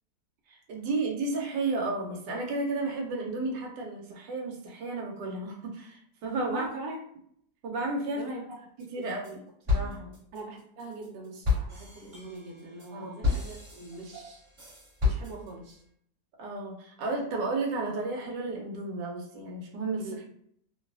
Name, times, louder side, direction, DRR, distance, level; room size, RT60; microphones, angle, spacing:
voice 1, 0.5-6.7 7.6-8.2 8.9-9.4 9.7-10.2 12.9-13.1 16.4-20.0, right 3 dB, 85° right, 0 dB, 1.3 m, -32 dB
voice 2, 6.4-7.0 8.1-8.6 9.0-9.4 9.8-10.0 10.3-14.4 15.0-15.8 20.0-20.3, right 2 dB, 65° right, -1 dB, 1.1 m, -42 dB
sound 1, 8.8-9.3 9.7-15.7, left 4 dB, 40° right, 1.4 m, -31 dB
3.1 x 2.2 x 2.3 m, 0.67 s
omnidirectional pair, 1.9 m